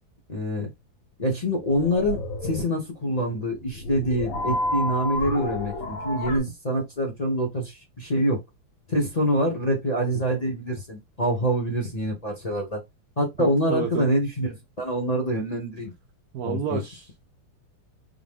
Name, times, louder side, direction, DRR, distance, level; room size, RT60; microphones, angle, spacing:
voice 1, 0.3-0.7 1.2-8.4 8.9-12.8 13.2-15.9 16.4-16.8, equal, 30° left, 0.8 m, -26 dB
sound 1, 1.4-6.4, left 1 dB, 75° left, 1.9 m, -31 dB
voice 2, 13.4-14.1 16.3-17.3, right 7 dB, 90° right, 0.8 m, -30 dB
3.8 x 2.1 x 3.5 m
omnidirectional pair, 2.1 m